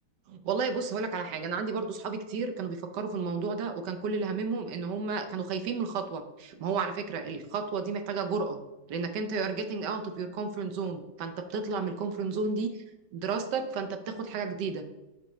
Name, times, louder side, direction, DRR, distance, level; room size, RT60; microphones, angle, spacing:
voice 1, 0.3-8.6 8.9-12.8 13.1-14.9, right 4 dB, 65° right, 8 dB, 1.2 m, -32 dB
8.7 x 5.4 x 3.1 m, 1.1 s
omnidirectional pair, 2.2 m